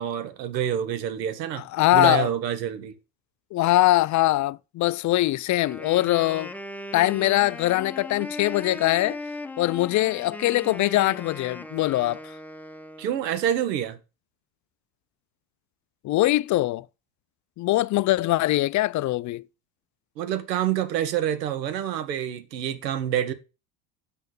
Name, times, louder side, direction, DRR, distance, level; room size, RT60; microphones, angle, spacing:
voice 1, 0.0-3.0 13.0-14.0 20.2-23.3, right 10 dB, 85° right, 1.5 m, -27 dB
voice 2, 1.6-2.3 3.5-6.5 6.9-9.2 9.6-12.2 16.0-16.8 17.6-19.4, left 16 dB, 40° left, 0.5 m, -22 dB
Wind instrument woodwind instrument, 5.6-13.3, left 1 dB, 5° left, 1.2 m, -38 dB
8.0 x 6.3 x 6.5 m
hypercardioid pair, 75°, 49 cm